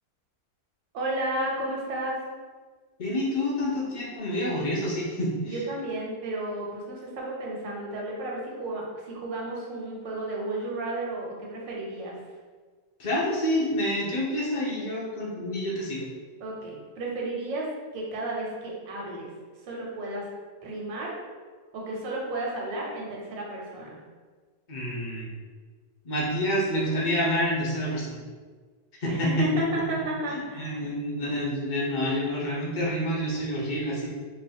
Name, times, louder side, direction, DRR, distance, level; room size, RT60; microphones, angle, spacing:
voice 1, 0.9-2.2 5.4-12.1 16.4-17.7 17.9-19.3 19.6-20.3 20.6-21.1 21.7-24.0 29.1-30.8, right 1 dB, 85° right, -3 dB, 1.6 m, -32 dB
voice 2, 3.0-5.6 13.0-16.1 24.7-25.3 26.0-28.2 29.0-29.5 30.3-34.1, equal, 50° left, -5 dB, 0.5 m, -28 dB
3.2 x 2.5 x 4.2 m, 1.5 s
omnidirectional pair, 1.9 m